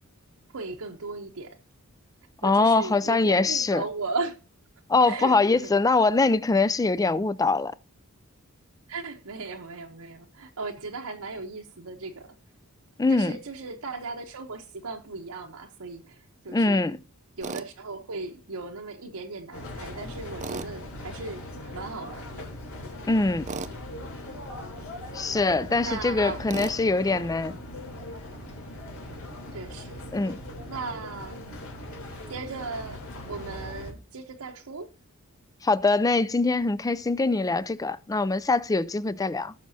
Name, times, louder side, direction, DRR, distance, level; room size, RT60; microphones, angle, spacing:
voice 1, 0.5-1.6 2.4-4.4 5.1-5.7 8.9-12.3 13.1-16.2 16.4-16.9 17.4-22.5 25.8-26.4 29.5-29.9 30.7-31.4 32.3-33.0 33.3-34.9, right 3 dB, 80° right, 0.9 m, -37 dB
voice 2, 2.4-3.8 4.9-7.7 13.0-13.3 16.5-17.0 23.1-23.5 25.1-27.5 30.1-30.4 35.6-39.5, left 3 dB, 15° left, 0.4 m, -23 dB
Tools, 17.4-17.7 20.4-20.7 23.5-23.8 26.5-26.8, right 4 dB, 35° right, 0.5 m, -34 dB
sound 1, 19.5-33.9, left 1 dB, 70° left, 3.4 m, -40 dB
18.0 x 6.1 x 2.7 m
head